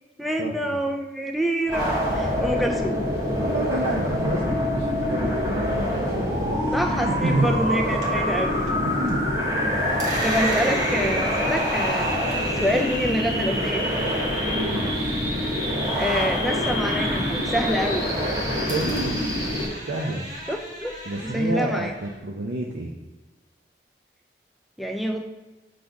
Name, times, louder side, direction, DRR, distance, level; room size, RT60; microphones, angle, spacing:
voice 1, 0.2-3.0 6.7-8.6 10.2-12.1 12.6-13.8 15.9-18.0 20.5-20.9 21.2-21.9 24.8-25.2, equal, ahead, 3 dB, 0.3 m, -26 dB
sound 1, 1.7-19.7, equal, 20° right, 1.2 m, -25 dB
voice 2, 3.4-7.5 8.8-9.2 14.5-15.2 18.7-19.5 19.9-20.3 21.1-22.9, right 2 dB, 80° right, 0 dB, 0.6 m, -29 dB
sound 2, 8.0-9.1 9.4-16.3 16.7-18.3 18.7-22.2, right 1 dB, 45° right, 1.3 m, -39 dB
5.0 x 4.0 x 5.7 m, 1.2 s
head